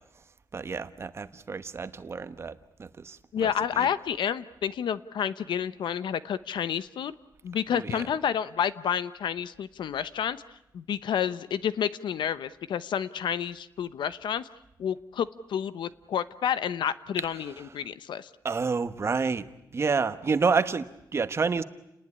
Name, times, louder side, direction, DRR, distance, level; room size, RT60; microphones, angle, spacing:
voice 1, 0.5-3.9 7.7-8.0 18.4-21.6, right 5 dB, 35° right, 11 dB, 1.1 m, -29 dB
voice 2, 3.3-7.1 7.4-10.4 10.7-14.5 14.8-18.3, left 8 dB, 80° left, 14 dB, 0.9 m, -30 dB
29.5 x 20.0 x 9.8 m, 0.86 s
wide cardioid pair, 150°, 8 cm